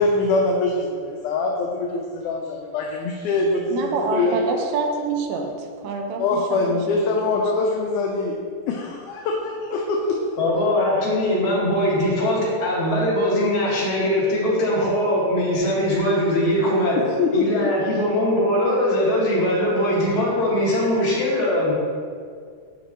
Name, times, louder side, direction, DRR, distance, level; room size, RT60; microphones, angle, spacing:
voice 1, 0.0-4.4 6.2-8.4 8.7-10.2 17.2-17.5, left 3 dB, 75° left, 0 dB, 2.0 m, -23 dB
voice 2, 3.7-5.5 5.8-6.2 6.5-6.6, right 4 dB, 85° right, 3 dB, 2.4 m, -25 dB
voice 3, 10.4-17.0 17.3-21.7, left 1 dB, 60° left, -6 dB, 3.1 m, -21 dB
11.0 x 5.2 x 3.0 m, 2.1 s
omnidirectional pair, 3.8 m